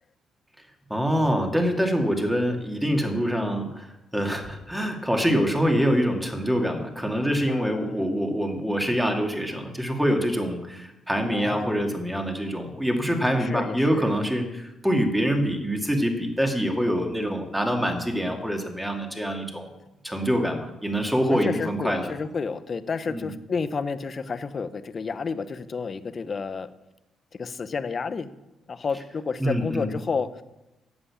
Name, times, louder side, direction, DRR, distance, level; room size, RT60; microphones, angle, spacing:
voice 1, 0.9-19.7 20.0-22.1 23.1-23.3 29.4-29.9, equal, 5° right, 3 dB, 2.3 m, -25 dB
voice 2, 7.5-8.1 11.3-11.8 13.3-14.1 21.3-26.7 27.3-28.3 28.7-30.4, left 5 dB, 40° left, 13 dB, 0.8 m, -31 dB
11.5 x 7.9 x 8.4 m, 0.97 s
cardioid pair, 90°, 0 cm